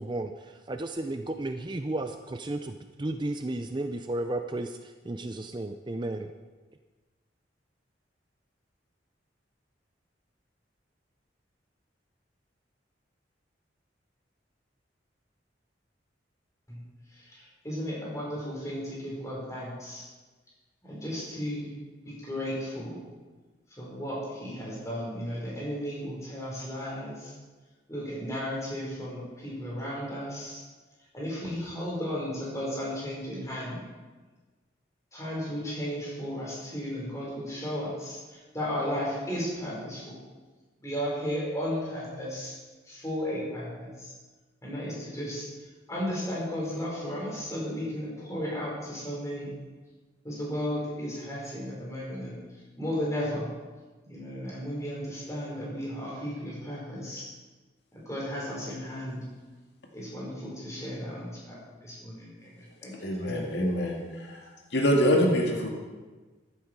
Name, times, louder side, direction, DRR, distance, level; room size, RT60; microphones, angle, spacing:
voice 1, 0.0-6.3, right 2 dB, 25° right, 7 dB, 0.5 m, -33 dB
voice 2, 17.1-20.1 20.8-21.7 22.0-23.0 23.8-27.3 27.9-30.6 31.1-33.8 35.1-40.2 40.8-42.5 42.8-44.1 44.6-45.5 45.9-49.5 50.2-52.4 52.8-53.5 54.1-57.3 57.9-59.3 59.9-62.9 63.2-63.5, equal, 15° left, -5 dB, 5.2 m, -34 dB
voice 3, 62.9-64.4 64.7-65.7, equal, 65° left, 0 dB, 2.0 m, -25 dB
14.5 x 12.0 x 4.7 m, 1.3 s
head